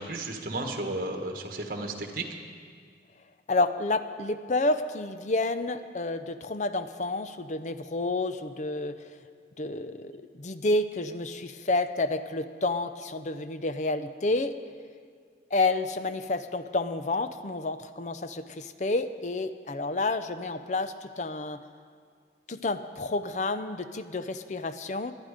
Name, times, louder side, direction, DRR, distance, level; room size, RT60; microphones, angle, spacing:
voice 1, 0.0-2.2, right 2 dB, 50° right, 3 dB, 1.5 m, -33 dB
voice 2, 3.5-9.0 9.6-14.5 15.5-21.6 22.5-25.1, left 2 dB, 40° left, 11 dB, 0.5 m, -29 dB
19.5 x 11.5 x 5.1 m, 2.1 s
head